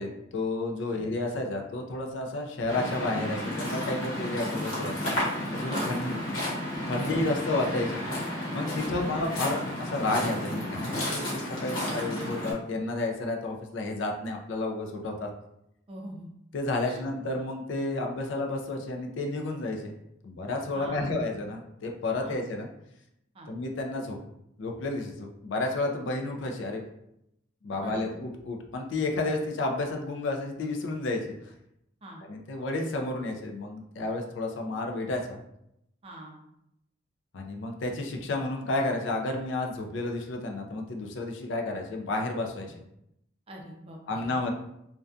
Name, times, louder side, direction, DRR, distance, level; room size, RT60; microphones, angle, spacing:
voice 1, 0.0-5.0 5.5-6.1 6.9-8.0 8.5-15.3 16.5-19.9 20.2-22.7 23.5-24.2 24.6-26.9 27.6-31.3 32.3-35.4 37.3-42.8 44.1-44.5, left 2 dB, 65° left, 2 dB, 0.4 m, -31 dB
Waves surf, 2.7-12.5, left 1 dB, 90° left, 0.9 m, -32 dB
voice 2, 5.7-6.5 8.8-9.1 15.9-16.3 16.8-17.0 20.7-21.1 22.2-22.4 23.3-23.5 27.8-27.9 32.0-32.2 36.0-36.4 42.6-42.7 43.5-44.0 44.4-44.5, equal, 30° right, -1 dB, 0.4 m, -42 dB
2.5 x 2.2 x 2.3 m, 0.80 s
head